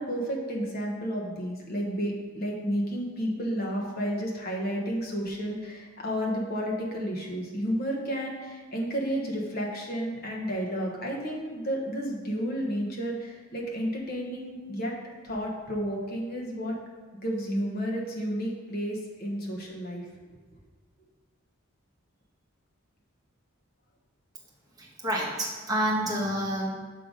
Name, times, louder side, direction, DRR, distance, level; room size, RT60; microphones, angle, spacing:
voice 1, 0.0-14.9 15.2-16.8 17.2-20.4, equal, 45° left, -1 dB, 1.1 m, -31 dB
voice 2, 24.8-26.7, right 1 dB, 15° right, -4 dB, 1.2 m, -28 dB
6.7 x 3.9 x 5.1 m, 1.4 s
head